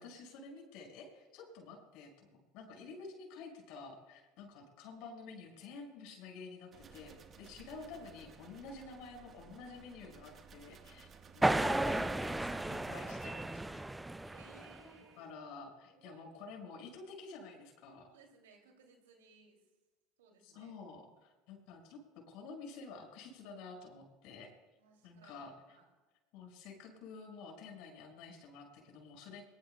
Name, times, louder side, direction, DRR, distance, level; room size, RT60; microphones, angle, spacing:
voice 1, 0.0-11.1 11.3-13.9 14.2-14.3 15.2-18.1 20.4-22.0 22.3-24.5 25.0-25.5 26.3-29.4, left 4 dB, 65° left, 1 dB, 5.5 m, -50 dB
sound 1, 6.7-13.3, right 6 dB, 40° right, 1.3 m, -57 dB
sound 2, 11.4-14.9, right 2 dB, 10° right, 0.5 m, -34 dB
voice 2, 14.3-15.3 15.8-16.3 18.1-19.6 20.2-20.7 24.8-25.9, right 5 dB, 80° right, 3 dB, 2.7 m, -62 dB
22.0 x 21.5 x 2.3 m, 1.2 s
hypercardioid pair, 80°, 0 cm